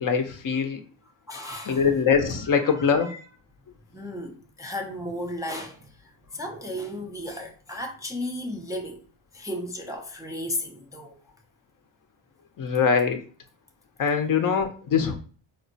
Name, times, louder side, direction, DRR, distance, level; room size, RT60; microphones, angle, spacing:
voice 1, 0.0-0.8 1.7-3.2 12.6-13.2 14.0-15.2, left 6 dB, 40° left, 0.6 m, -23 dB
voice 2, 1.3-1.9 2.5-3.2 3.9-9.0 9.3-11.2, left 1 dB, 10° right, 0.4 m, -35 dB
4.2 x 2.1 x 2.6 m
supercardioid pair, 75°, 49 cm